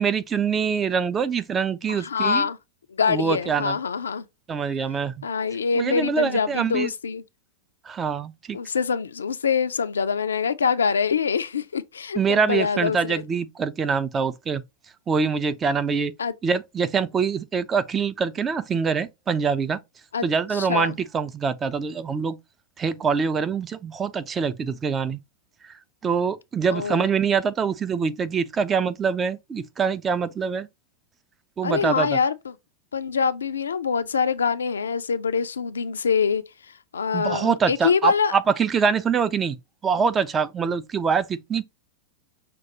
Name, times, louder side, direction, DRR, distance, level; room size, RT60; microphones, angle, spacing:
voice 1, 0.0-2.5 3.1-3.8 4.5-5.3 5.8-6.9 7.9-8.6 12.2-14.6 15.1-16.1 16.4-19.8 20.2-22.4 22.8-25.2 26.0-30.7 31.6-32.2 37.1-39.6 39.8-41.6, right 6 dB, 20° right, 0.3 m, -24 dB
voice 2, 1.9-2.6 3.0-4.2 5.2-7.2 8.5-13.2 16.2-16.3 20.1-20.3 20.5-20.9 26.7-27.1 31.6-32.6 32.9-36.4 36.9-38.3, left 6 dB, 70° left, 0.3 m, -24 dB
5.9 x 2.3 x 2.8 m
figure-of-eight pair, 90°, 0 cm